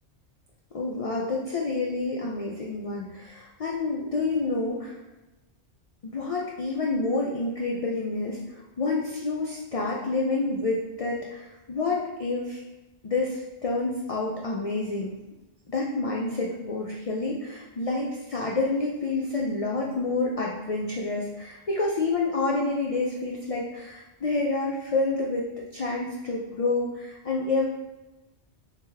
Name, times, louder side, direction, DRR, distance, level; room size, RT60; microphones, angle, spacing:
voice 1, 0.7-5.0 6.0-12.6 13.0-15.1 15.7-27.7, left 3 dB, 60° left, -3 dB, 0.3 m, -28 dB
3.3 x 2.9 x 3.3 m, 1.1 s
omnidirectional pair, 1.2 m